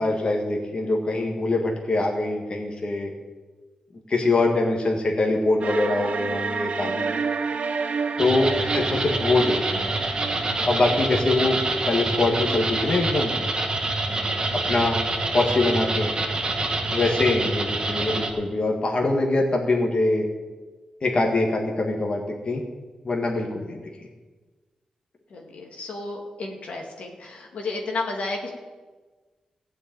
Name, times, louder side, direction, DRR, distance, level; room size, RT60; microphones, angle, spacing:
voice 1, 0.0-3.1 4.1-7.1 8.2-9.9 10.6-11.6 11.9-13.3 14.5-15.0 15.3-16.1 16.9-20.3 21.0-22.6 23.0-23.8, left 2 dB, 45° left, 0 dB, 1.8 m, -23 dB
sound 1, 5.6-12.6, right 5 dB, 65° right, 0.8 m, -30 dB
sound 2, 8.2-18.3, right 2 dB, 35° right, 1.8 m, -26 dB
voice 2, 14.1-14.5 16.9-17.1 25.3-28.5, left 3 dB, 75° left, 0 dB, 2.1 m, -33 dB
15.5 x 5.3 x 8.9 m, 1.3 s
cardioid pair, 85°, 2 cm